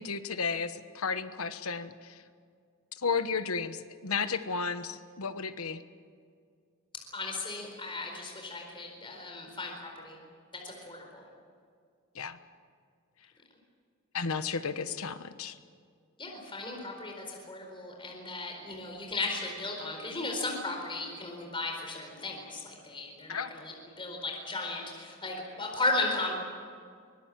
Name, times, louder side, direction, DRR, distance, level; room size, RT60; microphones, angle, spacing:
voice 1, 0.0-2.2 3.0-5.8 12.1-12.4 14.1-15.6 23.3-23.5, left 5 dB, 90° left, 11 dB, 1.2 m, -33 dB
voice 2, 7.1-10.2 10.5-11.2 16.2-26.3, left 2 dB, 25° left, 1 dB, 4.4 m, -36 dB
24.5 x 20.0 x 7.5 m, 2.2 s
head